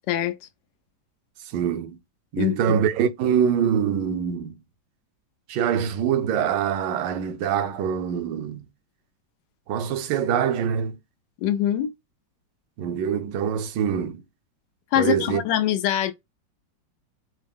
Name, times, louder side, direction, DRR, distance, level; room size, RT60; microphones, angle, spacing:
voice 1, 1.5-2.0 2.3-4.5 5.5-8.6 9.7-11.0 12.8-14.2 15.0-15.4, right 8 dB, 80° right, 1.2 m, -24 dB
voice 2, 11.4-11.9 14.9-16.1, left 11 dB, 90° left, 1.3 m, -23 dB
4.4 x 2.0 x 3.5 m
omnidirectional pair, 1.9 m